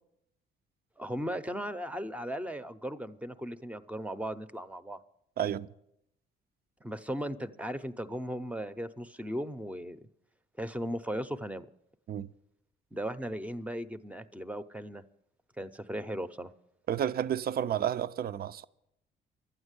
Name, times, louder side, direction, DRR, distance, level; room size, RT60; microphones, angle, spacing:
voice 1, 1.0-5.0 6.8-10.0 10.6-11.7 12.9-15.0 15.6-16.5, equal, 5° right, 0.7 m, -37 dB
voice 2, 5.4-5.7 12.1-12.3 16.9-18.7, right 10 dB, 50° right, 0.5 m, -31 dB
12.0 x 8.9 x 8.2 m
cardioid pair, 90°, 20 cm